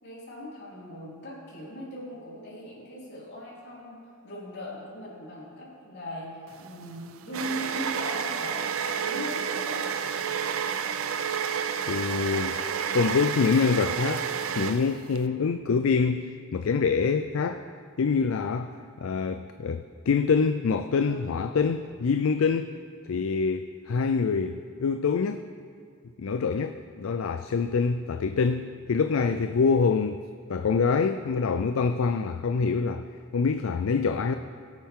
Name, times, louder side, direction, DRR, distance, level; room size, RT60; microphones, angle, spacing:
voice 1, 0.0-4.0 4.2-9.8 21.0-21.2, left 1 dB, 55° left, -7 dB, 3.9 m, -39 dB
sound 1, 6.5-15.2, right 7 dB, 75° right, 0.6 m, -30 dB
voice 2, 11.9-12.6 12.9-14.3 14.6-17.6 18.0-18.7 19.0-22.7 23.1-25.4 26.2-30.2 30.5-33.0 33.3-34.3, left 5 dB, 70° left, 9 dB, 0.4 m, -25 dB
20.5 x 8.8 x 3.7 m, 2.2 s
head